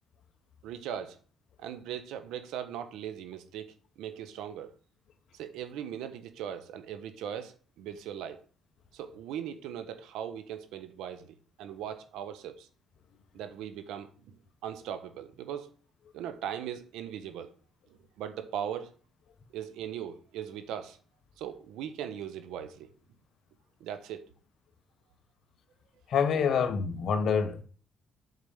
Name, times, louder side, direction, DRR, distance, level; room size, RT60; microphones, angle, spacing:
voice 1, 0.6-1.2 1.6-4.7 5.3-8.4 8.9-12.7 13.3-14.4 14.6-15.7 16.1-17.5 17.9-18.9 19.5-21.0 21.4-22.9 23.8-24.3, right 9 dB, 85° right, 1.2 m, -39 dB
voice 2, 26.1-27.6, left 6 dB, 65° left, 1.2 m, -26 dB
8.1 x 4.9 x 7.2 m
cardioid pair, 85°, 0 cm